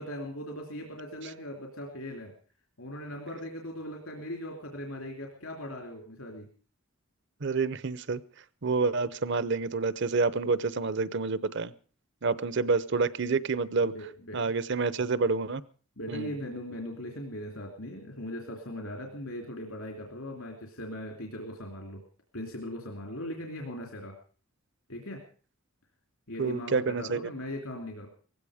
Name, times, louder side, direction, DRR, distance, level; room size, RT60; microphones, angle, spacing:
voice 1, 0.0-2.3 2.8-6.5 13.8-14.4 16.0-22.0 22.3-24.1 24.9-25.2 26.3-28.1, left 1 dB, 75° left, 1 dB, 3.0 m, -39 dB
voice 2, 7.4-8.2 8.6-11.7 12.2-13.9 14.3-15.6 16.1-16.4 26.4-27.2, right 4 dB, 55° right, 17 dB, 0.7 m, -28 dB
18.5 x 15.5 x 5.0 m, 0.41 s
head